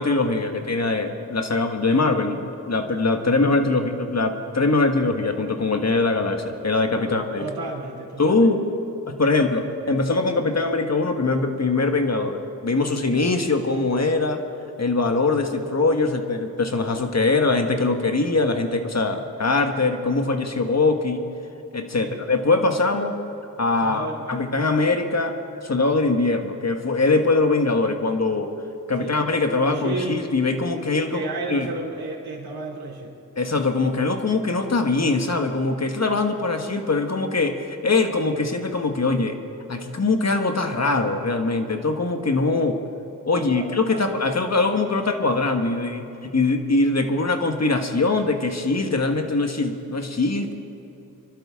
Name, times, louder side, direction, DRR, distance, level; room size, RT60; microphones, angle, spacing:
voice 1, 0.0-7.5 8.2-8.6 9.1-14.4 14.8-21.3 21.7-23.1 23.6-25.4 25.6-28.5 28.9-31.7 33.4-39.4 39.7-42.8 43.3-50.5, left 3 dB, 45° left, 5 dB, 1.5 m, -22 dB
voice 2, 7.0-8.5 22.0-22.2 23.8-24.5 29.0-29.2 29.5-30.2 31.1-33.1 43.3-44.0, right 2 dB, 85° right, -1 dB, 2.9 m, -33 dB
25.5 x 12.0 x 3.7 m, 3.0 s
cardioid pair, 55°, 36 cm